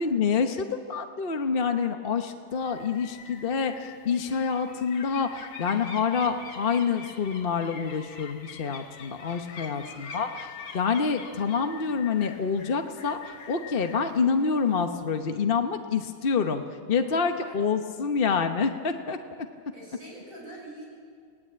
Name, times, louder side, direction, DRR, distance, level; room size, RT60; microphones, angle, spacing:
voice 1, 0.0-13.2 13.5-16.6 16.9-19.2, left 5 dB, 35° left, 6 dB, 0.9 m, -27 dB
sound 1, 2.5-15.0, left 6 dB, 85° left, 2.3 m, -45 dB
voice 2, 9.7-10.0 17.2-17.5 19.7-20.9, right 1 dB, 40° right, -3 dB, 8.4 m, -45 dB
29.0 x 19.0 x 8.7 m, 2.1 s
omnidirectional pair, 2.1 m